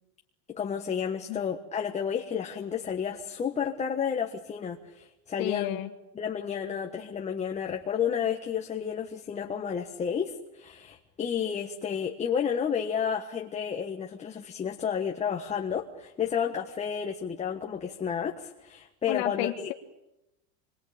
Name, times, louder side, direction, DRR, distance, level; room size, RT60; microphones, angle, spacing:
voice 1, 0.6-5.8 6.2-19.5, left 7 dB, 15° left, 2 dB, 1.4 m, -31 dB
voice 2, 5.4-5.9 19.1-19.7, left 16 dB, 55° left, 4 dB, 1.7 m, -31 dB
28.0 x 23.0 x 8.8 m, 0.91 s
supercardioid pair, 165°, 44 cm